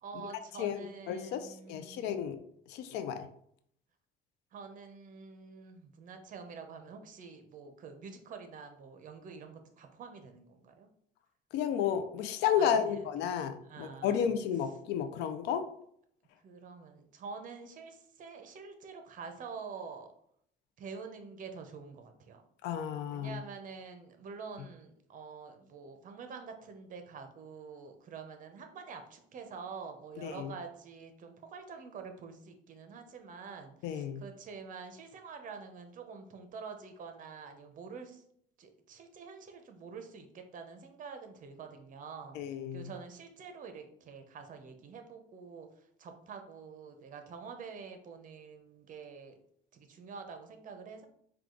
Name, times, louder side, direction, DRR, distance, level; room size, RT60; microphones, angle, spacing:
voice 1, 0.0-2.1 4.5-10.9 12.6-13.3 13.7-14.4 16.4-20.1 20.8-22.4 23.1-38.2 38.6-42.4 42.7-45.7 46.0-49.4 49.7-51.1, right 5 dB, 50° right, 6 dB, 0.7 m, -47 dB
voice 2, 0.6-2.4 2.7-3.3 11.5-15.7 22.6-23.4 30.2-30.5 33.8-34.2 42.3-42.9, left 8 dB, 90° left, 9 dB, 0.5 m, -32 dB
4.7 x 2.3 x 3.7 m, 0.68 s
cardioid pair, 110°, 17 cm